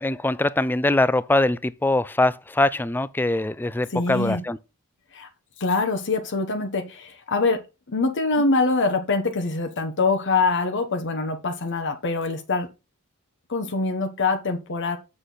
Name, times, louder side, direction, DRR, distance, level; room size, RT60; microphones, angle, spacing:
voice 1, 0.0-4.6, left 2 dB, 10° left, 0.3 m, -22 dB
voice 2, 3.9-4.4 5.1-5.3 5.6-7.6 7.9-12.7 13.5-15.0, left 3 dB, 55° left, 1.0 m, -24 dB
7.6 x 6.5 x 3.9 m
head